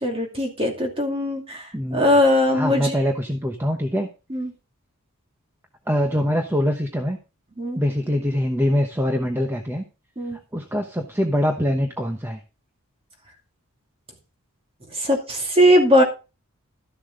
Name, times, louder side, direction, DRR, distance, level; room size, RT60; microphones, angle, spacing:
voice 1, 0.0-1.6 1.9-3.0 4.3-4.5 7.6-7.8 10.2-10.4 15.0-16.0, equal, 25° right, 3 dB, 2.5 m, -19 dB
voice 2, 1.7-2.1 2.5-4.1 5.9-7.2 7.8-9.8 10.3-12.4, equal, 10° right, 4 dB, 1.0 m, -23 dB
13.0 x 7.2 x 3.8 m, 0.30 s
head